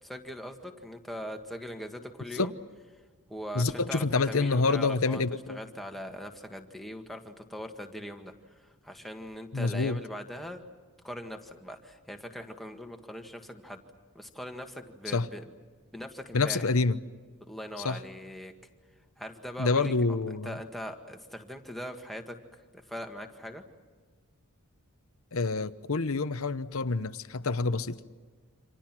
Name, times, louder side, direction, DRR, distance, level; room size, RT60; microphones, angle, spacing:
voice 1, 0.0-2.5 3.3-5.2 5.5-10.6 11.0-13.8 14.1-15.5 15.9-16.7 17.5-18.5 19.2-20.2 20.4-22.4 22.7-23.6, equal, ahead, 1.8 m, -41 dB
voice 2, 3.5-5.6 9.5-10.0 15.1-15.3 16.3-17.0 17.8-18.0 19.6-20.6 25.3-28.0, left 3 dB, 65° left, 0.9 m, -27 dB
28.5 x 26.5 x 6.1 m
head